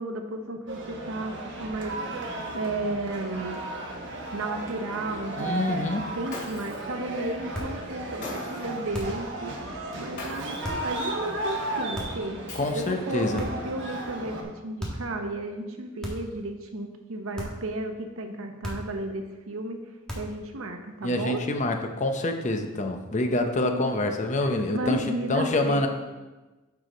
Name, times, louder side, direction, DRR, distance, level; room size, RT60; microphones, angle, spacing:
voice 1, 0.0-1.9 2.5-3.6 4.3-5.6 6.1-12.4 12.7-19.8 20.1-21.4 23.6-23.8 24.4-25.9, right 2 dB, 90° right, 5 dB, 0.9 m, -33 dB
sound 1, 0.7-14.4, right 2 dB, 60° right, 1.3 m, -35 dB
voice 2, 5.4-6.0 12.6-13.4 21.0-25.0 25.3-25.9, left 2 dB, 35° left, 5 dB, 0.7 m, -26 dB
Shatter, 6.3-6.9 8.2-8.8 10.2-10.7 12.5-13.1, left 2 dB, 55° left, 2.7 m, -40 dB
sound 2, 7.5-7.8 8.9-9.3 10.6-10.9 11.9-12.3 13.3-13.8 14.8-15.1 16.0-16.4 17.3-17.7 18.6-19.0 20.1-20.4, equal, 5° left, 1.4 m, -36 dB
9.6 x 4.8 x 3.9 m, 1.2 s
head